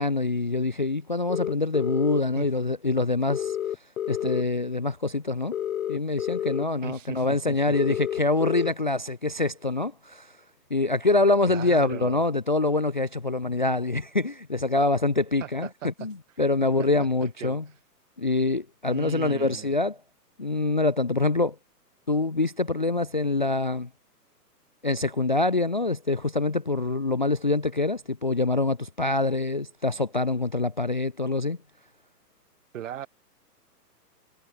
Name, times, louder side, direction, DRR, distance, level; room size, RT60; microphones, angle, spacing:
voice 1, 0.0-3.6 4.1-5.6 5.9-10.4 10.7-17.6 18.2-20.0 20.4-21.6 22.1-23.9 24.8-31.6, left 2 dB, 35° left, 0.4 m, -25 dB
sound 1, 1.3-2.2 3.3-4.4 5.5-6.6 7.7-8.7, left 10 dB, 55° left, 1.7 m, -29 dB
voice 2, 6.8-8.0 11.5-12.2 15.4-16.1 17.2-17.6 18.9-19.8 32.7-33.1, right 10 dB, 50° right, 2.3 m, -38 dB
hypercardioid pair, 165°, 48 cm